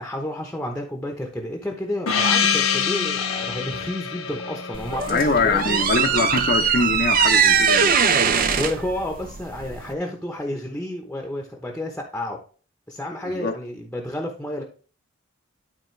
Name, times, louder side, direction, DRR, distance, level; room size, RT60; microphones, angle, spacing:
voice 1, 0.0-5.8 8.6-12.4 12.9-14.6, left 1 dB, 5° left, 0.9 m, -31 dB
Gong, 2.1-6.4, left 6 dB, 80° left, 1.0 m, -25 dB
sound 1, 4.7-9.9, right 6 dB, 40° right, 0.6 m, -21 dB
voice 2, 5.1-8.0 13.2-13.5, left 3 dB, 45° left, 0.8 m, -23 dB
12.0 x 4.2 x 3.3 m
head